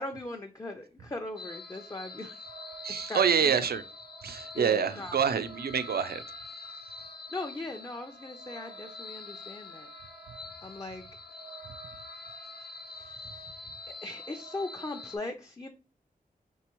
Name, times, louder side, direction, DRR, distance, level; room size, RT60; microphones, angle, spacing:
voice 1, 0.0-2.5 2.9-3.6 4.5-5.2 7.3-9.9 10.6-11.0 11.3-11.4 12.9-15.7, left 2 dB, 20° left, 0.5 m, -39 dB
sound 1, 1.4-15.2, left 2 dB, 90° left, 0.9 m, -45 dB
voice 2, 2.8-3.8 4.2-6.2, right 7 dB, 75° right, 0.4 m, -27 dB
4.6 x 3.4 x 2.9 m
wide cardioid pair, 90°, 16 cm